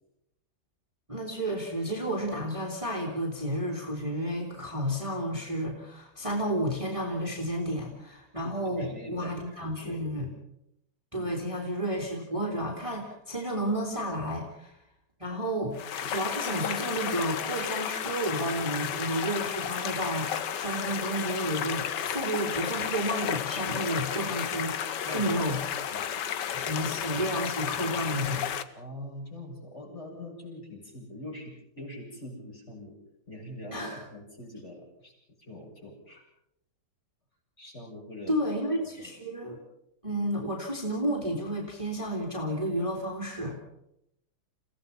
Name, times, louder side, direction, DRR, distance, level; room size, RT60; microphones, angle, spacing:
voice 1, 1.1-10.3 11.1-14.7 15.2-26.0 26.5-28.4 33.7-34.0 38.3-39.6 40.0-43.6, equal, 15° right, -1 dB, 3.3 m, -31 dB
voice 2, 8.4-10.0 11.1-11.3 17.5-17.7 25.0-25.3 25.9-26.6 28.7-33.0 33.3-33.8 34.1-35.1 35.4-36.2 37.6-38.4 39.0-39.1, left 1 dB, 30° left, -2 dB, 7.4 m, -43 dB
sound 1, 15.7-28.6, left 9 dB, 60° left, 1.5 m, -33 dB
29.5 x 17.0 x 5.7 m, 0.82 s
omnidirectional pair, 2.3 m